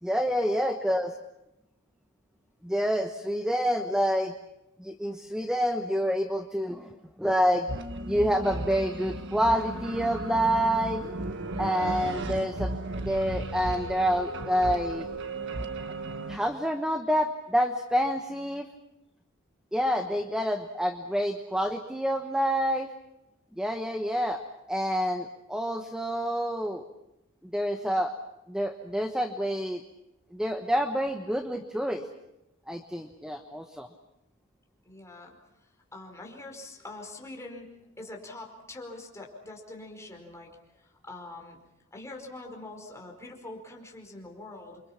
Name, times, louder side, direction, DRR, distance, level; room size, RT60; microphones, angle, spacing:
voice 1, 0.0-1.2 2.6-4.3 4.8-7.7 8.0-11.0 11.6-15.1 16.3-18.7 19.7-22.9 23.6-24.4 24.7-26.9 27.4-28.1 28.5-29.8 30.3-32.0 32.7-33.9, equal, 5° right, 6 dB, 1.2 m, -28 dB
sound 1, 7.7-16.4, right 2 dB, 55° right, 1.6 m, -35 dB
voice 2, 34.8-40.5 40.8-41.6 41.9-44.8, left 2 dB, 15° left, 1 dB, 5.0 m, -44 dB
29.0 x 25.0 x 5.9 m, 0.89 s
head